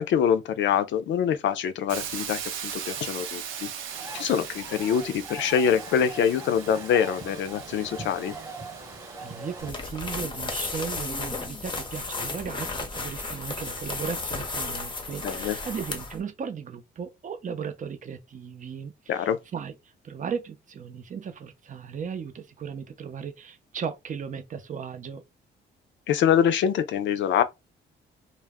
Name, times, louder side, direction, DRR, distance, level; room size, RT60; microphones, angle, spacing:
voice 1, 0.0-3.7 4.1-8.3 15.2-15.6 19.1-19.4 26.1-27.4, left 8 dB, 70° left, 0.5 m, -25 dB
Hiss, 1.9-11.8, right 8 dB, 85° right, 0.6 m, -40 dB
sound 1, 3.9-9.7, right 2 dB, 15° right, 0.9 m, -41 dB
voice 2, 9.2-19.7 20.0-25.2, right 7 dB, 40° right, 0.6 m, -36 dB
sound 2, 9.6-16.2, left 3 dB, 25° left, 0.7 m, -33 dB
2.2 x 2.0 x 3.5 m
cardioid pair, 90°, 20 cm